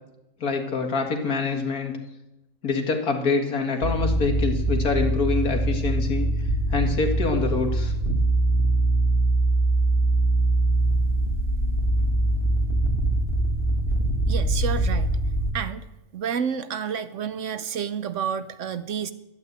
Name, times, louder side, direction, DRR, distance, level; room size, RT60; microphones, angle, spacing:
voice 1, 0.4-1.9 2.6-6.3 6.7-7.9, left 4 dB, 85° left, 3 dB, 2.4 m, -25 dB
sound 1, 3.8-15.5, right 2 dB, 50° left, 2.5 m, -23 dB
voice 2, 14.3-15.1 15.5-15.9 16.1-19.1, right 7 dB, 60° right, 13 dB, 1.0 m, -29 dB
12.0 x 10.5 x 8.1 m, 0.93 s
omnidirectional pair, 1.5 m